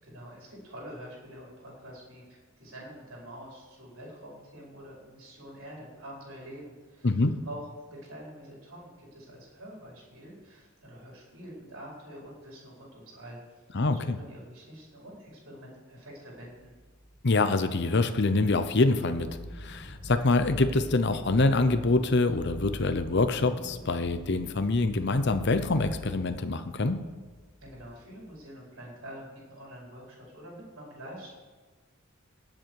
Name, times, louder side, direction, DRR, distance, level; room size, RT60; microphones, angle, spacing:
voice 1, 0.0-13.6 13.9-16.7 27.6-31.3, equal, 70° right, -4 dB, 4.7 m, -46 dB
voice 2, 7.0-7.4 13.7-14.2 17.2-27.0, left 2 dB, 50° left, 9 dB, 0.8 m, -25 dB
sound 1, 16.3-17.2 17.7-18.0 18.4-28.3, equal, 10° left, 2.2 m, -44 dB
20.0 x 7.7 x 4.7 m, 1.4 s
head